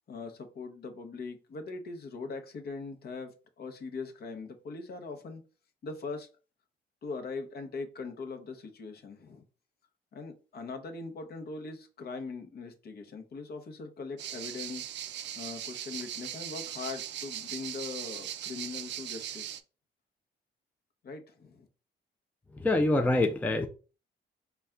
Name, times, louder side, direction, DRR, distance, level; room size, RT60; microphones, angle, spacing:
voice 1, 0.1-5.4 5.8-6.3 7.0-9.4 10.1-14.9 15.4-19.5 21.0-21.7, left 4 dB, 55° left, 0.8 m, -41 dB
sound 1, 14.2-19.6, right 10 dB, 65° right, 0.4 m, -39 dB
voice 2, 22.5-23.7, left 2 dB, 10° left, 0.4 m, -25 dB
4.1 x 2.3 x 3.5 m
cardioid pair, 90°, 20 cm